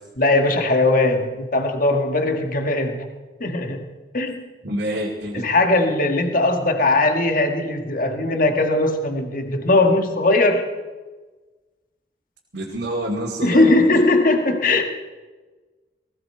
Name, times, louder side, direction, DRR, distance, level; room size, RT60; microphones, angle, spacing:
voice 1, 0.2-3.1 3.4-3.8 4.1-4.4 5.3-10.7 13.4-14.8, left 2 dB, 50° left, 5 dB, 1.5 m, -19 dB
voice 2, 4.6-5.4 12.5-13.7, right 1 dB, 75° right, -3 dB, 2.4 m, -27 dB
19.5 x 16.5 x 4.3 m, 1.3 s
head